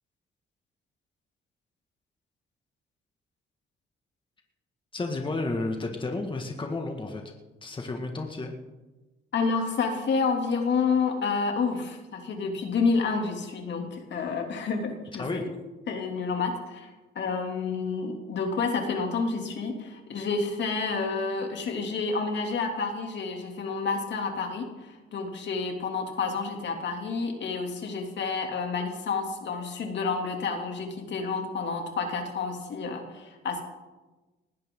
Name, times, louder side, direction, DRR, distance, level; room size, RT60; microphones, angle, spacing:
voice 1, 4.9-7.2 7.6-8.5 15.2-15.5, left 2 dB, 25° left, 2 dB, 2.0 m, -31 dB
voice 2, 9.3-15.5 15.9-16.9 17.1-33.6, left 4 dB, 65° left, 3 dB, 2.9 m, -29 dB
20.0 x 15.5 x 3.9 m, 1.1 s
cardioid pair, 90°, 20 cm